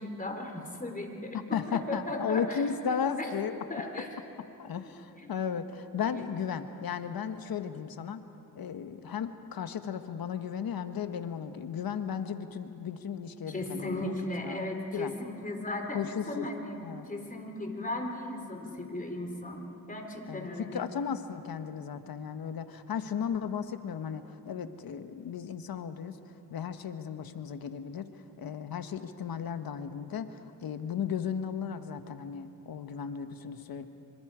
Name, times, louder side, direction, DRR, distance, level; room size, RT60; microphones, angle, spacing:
voice 1, 0.0-2.6 2.9-3.3 3.7-4.1 4.8-5.3 13.5-16.8 17.1-20.8, left 1 dB, 20° left, 3 dB, 4.1 m, -36 dB
voice 2, 1.5-3.5 4.6-8.2 8.5-14.1 14.4-14.6 14.9-15.1 15.9-16.5 16.8-17.1 20.3-26.2 26.5-28.1 28.4-33.9, left 7 dB, 70° left, 9 dB, 1.3 m, -35 dB
26.5 x 25.5 x 5.0 m, 2.8 s
cardioid pair, 80°, 37 cm